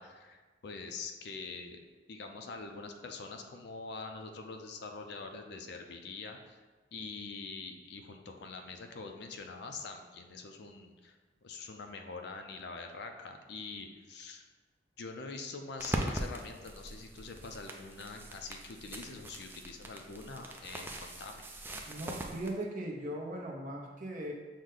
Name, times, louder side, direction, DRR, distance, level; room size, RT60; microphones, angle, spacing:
voice 1, 0.0-1.8 2.1-6.6 6.9-14.5 15.0-21.4, left 4 dB, 60° left, 5 dB, 0.4 m, -44 dB
sound 1, 15.8-22.5, right 1 dB, 10° right, 0.3 m, -41 dB
voice 2, 21.9-24.3, right 1 dB, 45° right, -1 dB, 0.7 m, -39 dB
6.2 x 2.1 x 3.8 m, 1.3 s
head